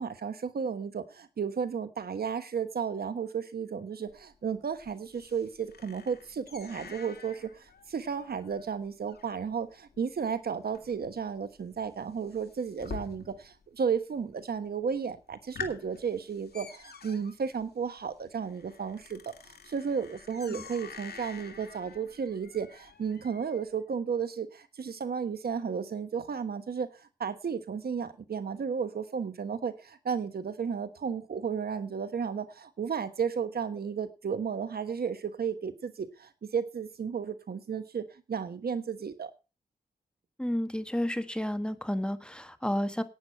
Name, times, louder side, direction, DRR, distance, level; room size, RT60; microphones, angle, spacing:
voice 1, 0.0-39.3, right 6 dB, 70° right, 11 dB, 1.3 m, -33 dB
sound 1, 4.1-13.6 13.9-14.5 14.9-15.0 15.3-23.6, left 6 dB, 75° left, 2.2 m, -48 dB
voice 2, 40.4-43.0, equal, 5° left, 9 dB, 1.4 m, -31 dB
11.5 x 9.4 x 5.6 m, 0.31 s
wide cardioid pair, 85°, 17 cm